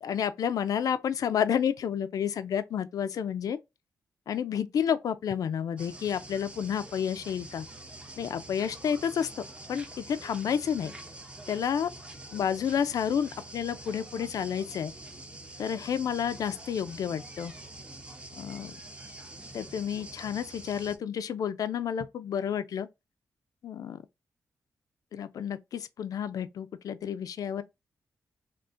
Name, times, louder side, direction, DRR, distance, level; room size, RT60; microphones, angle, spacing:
voice 1, 0.0-3.6 4.3-7.7 8.2-9.4 9.7-10.9 11.5-11.9 12.3-14.9 15.6-17.5 18.4-18.8 19.5-22.9 23.6-24.0 25.1-27.6, left 8 dB, 70° left, 0.3 m, -30 dB
sound 1, 5.8-21.0, right 2 dB, 15° right, 0.6 m, -46 dB
3.6 x 2.4 x 2.4 m
cardioid pair, 100°, 7 cm